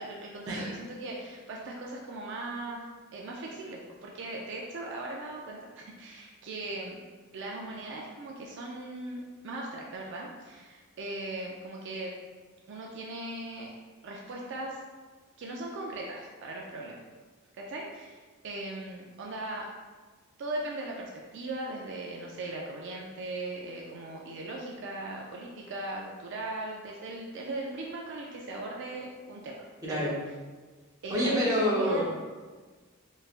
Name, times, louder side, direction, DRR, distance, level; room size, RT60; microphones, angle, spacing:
voice 1, 0.0-2.8 3.1-7.0 7.3-12.1 12.7-13.7 14.0-14.8 15.4-17.0 17.6-19.7 20.4-29.5 29.9-30.2 31.0-32.1, right 2 dB, 60° right, -2 dB, 0.4 m, -39 dB
voice 2, 29.8-30.1 31.1-32.1, equal, 15° right, -6 dB, 0.8 m, -27 dB
3.3 x 3.1 x 2.4 m, 1.4 s
head